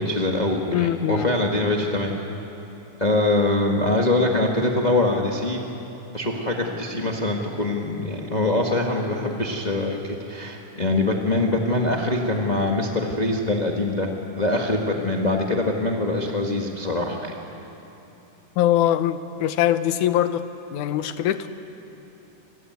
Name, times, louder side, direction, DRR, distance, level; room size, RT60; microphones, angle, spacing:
voice 1, 0.0-2.2 3.0-5.6 6.1-17.3, left 2 dB, 30° left, 0 dB, 0.8 m, -23 dB
voice 2, 0.7-1.3 18.6-21.5, left 11 dB, 70° left, 11 dB, 2.2 m, -22 dB
29.0 x 21.5 x 9.4 m, 2.9 s
omnidirectional pair, 3.8 m